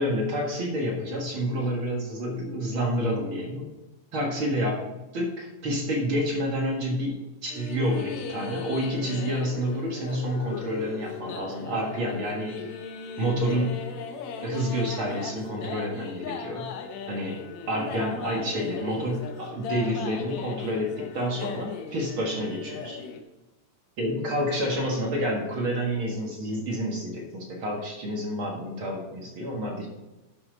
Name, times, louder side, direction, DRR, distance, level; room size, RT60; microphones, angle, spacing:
voice 1, 0.0-3.7 4.1-12.6 13.2-13.8 14.4-16.7 17.1-17.4 17.7-23.0 24.0-29.9, equal, 50° right, -1 dB, 2.2 m, -29 dB
sound 1, 7.5-23.2, left 6 dB, 75° left, 2.1 m, -37 dB
11.5 x 6.9 x 4.0 m, 1.1 s
omnidirectional pair, 3.4 m